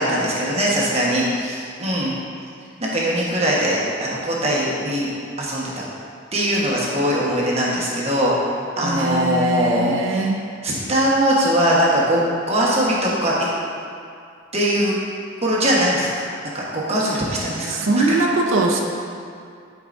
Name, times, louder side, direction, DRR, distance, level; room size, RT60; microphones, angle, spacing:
voice 1, 0.0-2.1 2.8-5.1 5.4-5.7 6.3-8.3 8.8-10.3 10.6-12.2 12.5-13.5 14.5-14.9 15.4-16.2 16.5-17.7 18.0-18.2, equal, 30° right, -5 dB, 1.2 m, -21 dB
voice 2, 8.8-10.4 17.7-18.8, right 2 dB, 70° right, 1 dB, 0.7 m, -21 dB
11.5 x 4.7 x 2.6 m, 2.3 s
head